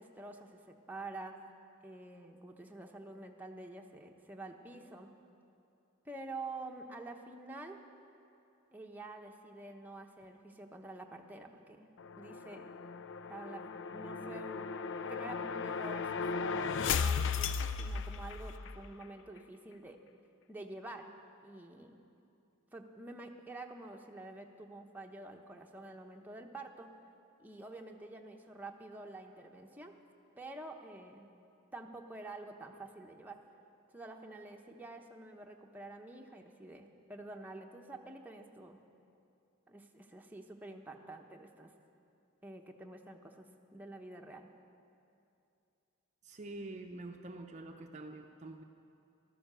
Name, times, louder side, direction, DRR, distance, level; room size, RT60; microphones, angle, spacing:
voice 1, 0.0-1.4 1.8-5.1 6.0-7.8 8.7-11.9 12.2-12.7 13.3-14.6 15.0-20.0 20.5-21.1 21.4-22.0 22.7-26.9 27.4-29.9 30.4-31.3 31.7-33.4 33.9-38.8 39.7-41.7 42.4-44.5, right 2 dB, 10° right, 2 dB, 0.9 m, -48 dB
sound 1, 12.0-18.8, left 5 dB, 65° left, 0.5 m, -36 dB
voice 2, 46.3-48.6, right 2 dB, 35° right, 4 dB, 0.6 m, -46 dB
14.5 x 12.5 x 6.8 m, 2.6 s
head